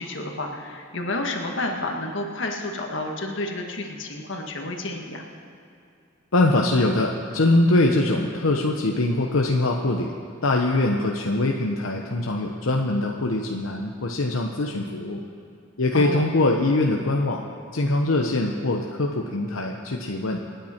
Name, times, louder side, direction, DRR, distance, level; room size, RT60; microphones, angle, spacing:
voice 1, 0.0-5.2 15.9-16.3, left 2 dB, 65° left, 2 dB, 1.6 m, -30 dB
voice 2, 6.3-10.1 10.4-15.2 15.8-17.4 17.7-20.4, left 2 dB, 85° left, 1 dB, 0.9 m, -23 dB
27.5 x 9.3 x 4.4 m, 2.4 s
head